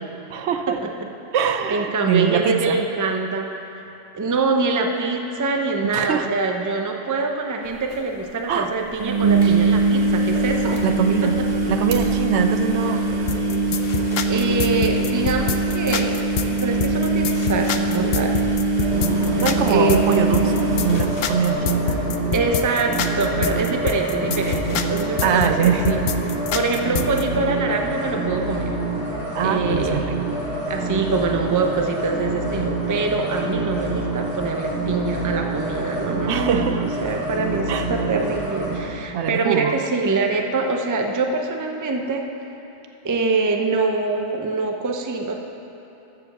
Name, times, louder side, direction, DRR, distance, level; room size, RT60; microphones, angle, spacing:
voice 1, 0.3-0.8 1.3-2.8 5.9-6.3 8.5-8.7 10.6-11.4 11.7-13.1 19.4-20.6 20.8-22.0 25.2-26.0 29.3-30.2 36.3-36.8 37.7-37.9 39.1-39.8, right 7 dB, 70° right, 7 dB, 0.8 m, -23 dB
voice 2, 1.7-3.5 3.7-3.8 4.1-10.8 11.2-11.3 14.3-16.3 16.6-18.4 19.7-20.0 22.3-26.0 26.5-28.7 29.4-30.0 30.7-42.3 43.0-45.4, right 3 dB, 20° right, 3 dB, 0.5 m, -24 dB
sound 1, 7.7-7.8 7.9-8.0 8.9-22.0 22.4-22.8 23.1-23.2 25.0-25.1, right 3 dB, 40° right, 1.1 m, -22 dB
sound 2, 13.3-27.2, left 7 dB, 65° left, 0.7 m, -27 dB
sound 3, 18.8-38.8, right 2 dB, 5° right, 2.8 m, -26 dB
13.5 x 5.0 x 6.9 m, 3.0 s
omnidirectional pair, 1.2 m